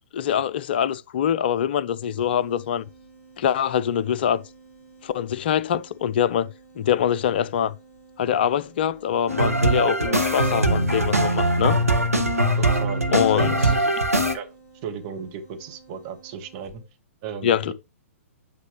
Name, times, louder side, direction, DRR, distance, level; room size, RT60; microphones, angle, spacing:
voice 1, 0.1-2.8 3.4-4.4 5.0-6.5 6.8-7.7 8.2-11.8 13.1-13.5 17.4-17.7, left 9 dB, 45° left, 0.5 m, -24 dB
sound 1, 2.1-16.9, right 4 dB, 10° left, 3.2 m, -52 dB
sound 2, 9.3-14.3, right 1 dB, 85° right, 1.6 m, -21 dB
voice 2, 12.6-13.1 13.3-13.9 14.3-14.5 14.8-16.8 17.2-17.7, right 7 dB, 30° right, 1.7 m, -35 dB
9.5 x 5.3 x 3.1 m
figure-of-eight pair, 115°, 8 cm